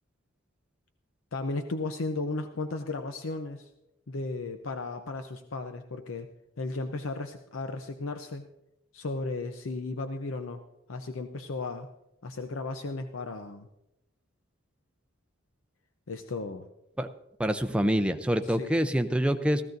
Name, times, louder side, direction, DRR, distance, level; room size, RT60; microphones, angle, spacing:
voice 1, 1.3-3.7 4.1-6.3 6.6-8.4 8.9-10.6 10.9-11.9 12.2-13.7 16.1-16.7 18.6-18.7, left 3 dB, 80° left, 7 dB, 0.7 m, -35 dB
voice 2, 17.4-19.6, equal, 5° right, 8 dB, 0.5 m, -26 dB
16.0 x 14.0 x 2.6 m, 0.87 s
head